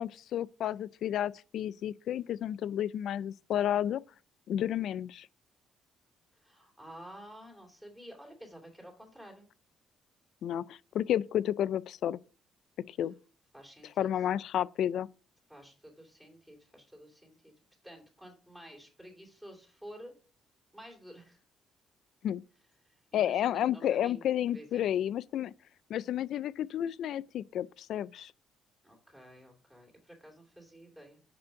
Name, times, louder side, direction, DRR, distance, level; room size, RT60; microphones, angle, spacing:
voice 1, 0.0-4.0 4.5-5.3 10.4-12.2 12.9-13.2 14.0-15.1 22.2-22.4 23.1-25.5 25.9-28.3, left 11 dB, 70° left, 0.4 m, -31 dB
voice 2, 6.3-9.5 13.5-14.1 15.5-17.5 17.8-20.1 20.7-21.4 22.8-24.9 28.8-31.2, equal, 5° right, 2.8 m, -51 dB
7.0 x 5.2 x 5.7 m
cardioid pair, 125°, 0 cm